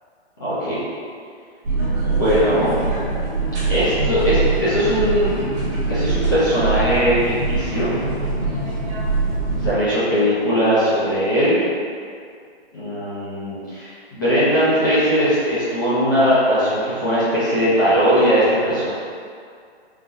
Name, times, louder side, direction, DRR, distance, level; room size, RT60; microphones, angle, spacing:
voice 1, 0.4-0.8 2.0-2.8 3.7-5.3 5.9-7.9 9.5-11.6 12.7-18.9, equal, 20° left, -13 dB, 0.4 m, -19 dB
sound 1, 1.6-9.7, right 3 dB, 30° right, 0.9 m, -23 dB
3.8 x 2.1 x 2.6 m, 2.2 s
hypercardioid pair, 160°, 33 cm